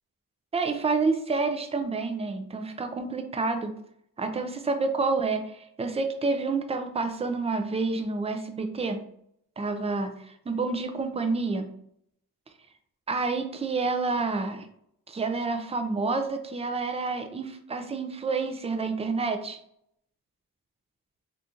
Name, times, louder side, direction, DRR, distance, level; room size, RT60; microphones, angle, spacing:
voice 1, 0.5-3.8 4.2-9.0 9.6-11.7 13.1-14.7 15.1-19.6, right 3 dB, 20° right, 7 dB, 0.4 m, -29 dB
2.8 x 2.5 x 3.6 m, 0.70 s
wide cardioid pair, 125°, 35 cm